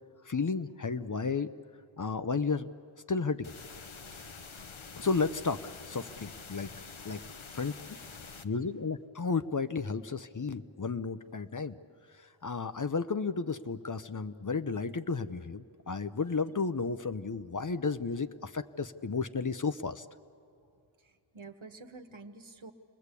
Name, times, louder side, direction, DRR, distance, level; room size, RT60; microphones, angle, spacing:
voice 1, 0.2-1.5 2.0-2.7 3.1-3.5 4.1-4.2 5.0-6.7 7.0-7.2 7.5-7.7 8.4-11.8 12.4-20.1, left 4 dB, 40° left, 10 dB, 0.6 m, -33 dB
sound 1, 3.4-8.4, left 5 dB, 75° left, 1.0 m, -47 dB
voice 2, 21.0-22.7, right 3 dB, 70° right, 6 dB, 1.3 m, -48 dB
28.5 x 20.5 x 8.3 m, 2.5 s
wide cardioid pair, 45°, 49 cm